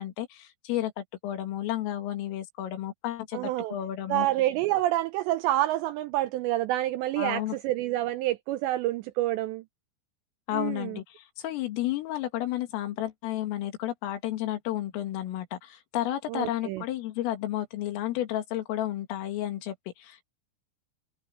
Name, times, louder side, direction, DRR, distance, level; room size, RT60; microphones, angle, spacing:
voice 1, 0.0-4.3 7.2-7.6 10.5-20.2, left 13 dB, 85° left, 4.7 m, -32 dB
voice 2, 3.3-3.8 4.1-9.6 10.5-11.0 16.3-16.8, right 15 dB, 85° right, 2.5 m, -28 dB
omnidirectional pair, 5.7 m